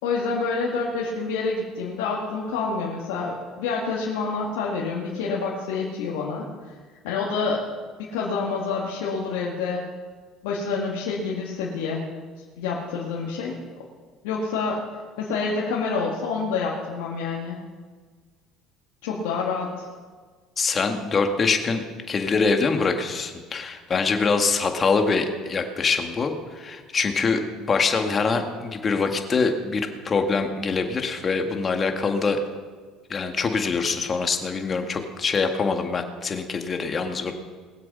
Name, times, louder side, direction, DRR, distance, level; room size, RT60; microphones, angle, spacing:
voice 1, 0.0-6.5 7.0-7.6 8.1-9.8 10.4-12.1 12.6-13.6 14.2-14.8 15.2-17.6 19.0-19.9, left 4 dB, 90° left, -4 dB, 2.0 m, -27 dB
voice 2, 20.6-32.4 33.1-37.3, left 4 dB, 35° left, 5 dB, 1.8 m, -24 dB
20.5 x 7.7 x 5.6 m, 1.5 s
supercardioid pair, 90°, 0 cm